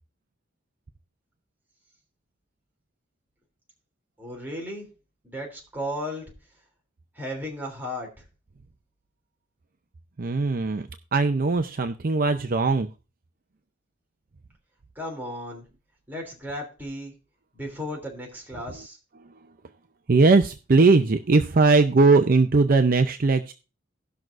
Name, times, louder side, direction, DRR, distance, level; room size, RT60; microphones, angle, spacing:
voice 1, 4.2-4.9 5.2-6.2 7.2-8.1 14.9-15.7 16.1-17.1 17.5-19.0, equal, 10° right, -1 dB, 3.1 m, -34 dB
voice 2, 10.2-12.9 20.1-23.5, right 3 dB, 50° right, 8 dB, 0.5 m, -20 dB
18.5 x 6.1 x 2.6 m, 0.31 s
head